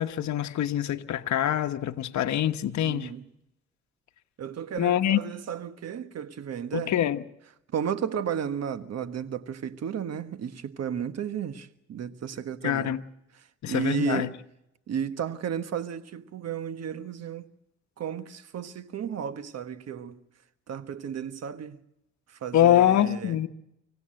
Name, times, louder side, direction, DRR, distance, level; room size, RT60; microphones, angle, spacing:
voice 1, 0.0-3.1 4.8-5.2 6.7-7.2 12.6-13.0 13.6-14.3 22.5-23.5, left 11 dB, 65° left, 1.1 m, -24 dB
voice 2, 2.8-3.3 4.4-6.9 7.7-12.9 13.3-14.3 14.9-17.5 18.0-20.2 20.7-21.8 22.3-23.4, right 8 dB, 55° right, 1.3 m, -33 dB
25.0 x 16.5 x 7.7 m
cardioid pair, 90°, 30 cm